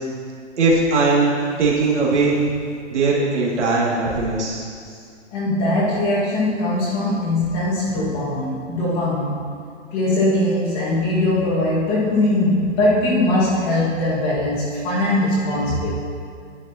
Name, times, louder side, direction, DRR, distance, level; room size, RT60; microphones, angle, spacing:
voice 1, 0.6-1.3 1.6-2.4 2.9-4.7, right 3 dB, 70° right, -4 dB, 2.4 m, -19 dB
voice 2, 5.3-9.4 9.9-15.9, left 1 dB, 25° left, -6 dB, 1.8 m, -21 dB
10.5 x 9.9 x 2.9 m, 2.2 s
hypercardioid pair, 160°, 36 cm